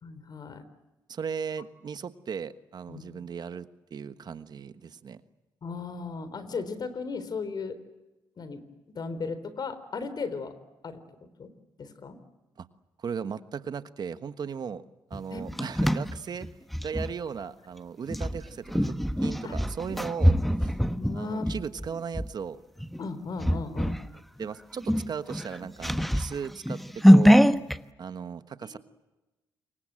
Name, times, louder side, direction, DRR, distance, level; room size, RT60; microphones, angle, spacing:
voice 1, 0.0-0.6 2.9-3.0 5.6-7.8 8.4-8.6 8.9-10.5 10.8-11.5 11.8-12.2 15.3-15.4 19.4-19.6 20.9-21.5 23.0-24.0 28.6-28.8, left 4 dB, 55° left, 12 dB, 4.0 m, -36 dB
voice 2, 1.1-5.2 12.6-12.7 13.0-14.8 15.1-16.5 16.8-18.9 19.2-20.7 21.1-22.6 24.4-27.4 28.0-28.8, right 6 dB, 55° right, 12 dB, 1.4 m, -37 dB
sound 1, 15.1-17.1 18.1-22.3 22.8-23.0 23.4-24.1 24.4-24.5 24.8-27.8, equal, ahead, 1.2 m, -23 dB
27.5 x 24.0 x 7.7 m, 1.1 s
supercardioid pair, 55°, 8 cm